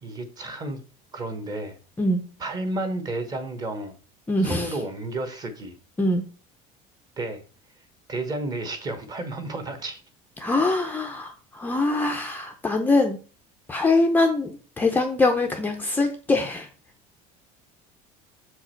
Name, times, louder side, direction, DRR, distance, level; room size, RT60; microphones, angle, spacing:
voice 1, 0.0-0.8 1.1-1.8 2.4-4.0 4.4-5.7 7.2-7.4 8.1-10.0, right 2 dB, 25° right, 8 dB, 1.0 m, -31 dB
voice 2, 4.3-4.7 6.0-6.2 10.4-13.2 13.7-16.7, left 2 dB, 10° left, 3 dB, 0.5 m, -23 dB
6.9 x 4.7 x 4.4 m, 0.38 s
cardioid pair, 170°, 17 cm